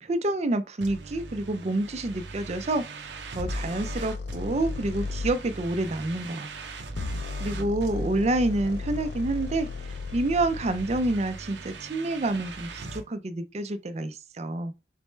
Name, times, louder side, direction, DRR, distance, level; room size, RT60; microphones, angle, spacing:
voice 1, 0.0-6.5 7.4-14.7, right 2 dB, 35° right, 0.4 m, -28 dB
sound 1, 0.8-13.0, right 3 dB, 85° right, 0.7 m, -41 dB
sound 2, 3.4-5.4 6.8-11.2, left 4 dB, 70° left, 0.4 m, -35 dB
4.0 x 3.2 x 3.2 m
head